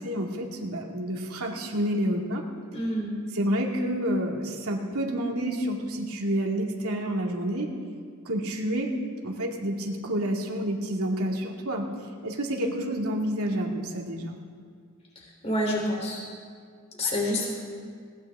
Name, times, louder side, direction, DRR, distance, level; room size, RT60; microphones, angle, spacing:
voice 1, 0.0-2.4 3.3-7.7 8.3-8.9 9.2-11.9 12.2-14.3, equal, 85° right, 0 dB, 2.4 m, -29 dB
voice 2, 2.7-3.1 15.4-16.2 17.0-17.5, left 1 dB, 30° left, -1 dB, 3.5 m, -27 dB
20.0 x 19.0 x 3.7 m, 2.1 s
head